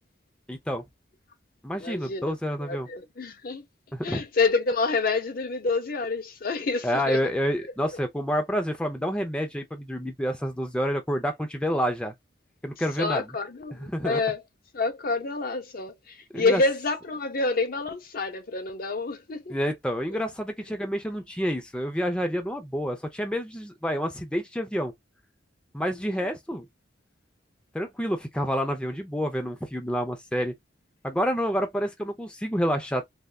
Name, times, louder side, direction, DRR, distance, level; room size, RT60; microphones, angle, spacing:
voice 1, 0.5-0.8 1.6-2.9 3.9-4.2 6.8-12.1 12.6-13.2 13.8-14.2 16.3-16.6 19.5-24.9 25.7-26.6 27.7-30.5 31.0-33.0, equal, 5° left, 0.5 m, -28 dB
voice 2, 1.7-3.6 4.0-7.2 13.0-14.4 14.7-19.6 26.1-26.3, left 3 dB, 50° left, 0.6 m, -28 dB
3.4 x 2.6 x 2.2 m
head